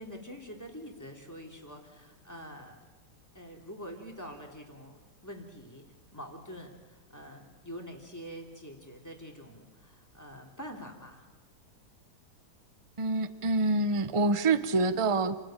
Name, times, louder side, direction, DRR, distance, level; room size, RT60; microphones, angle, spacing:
voice 1, 0.0-2.9 3.3-5.8 6.1-11.2, equal, 10° left, 1 dB, 3.2 m, -45 dB
voice 2, 13.0-15.4, right 3 dB, 35° right, 12 dB, 0.4 m, -26 dB
28.5 x 16.5 x 9.0 m, 1.3 s
omnidirectional pair, 2.2 m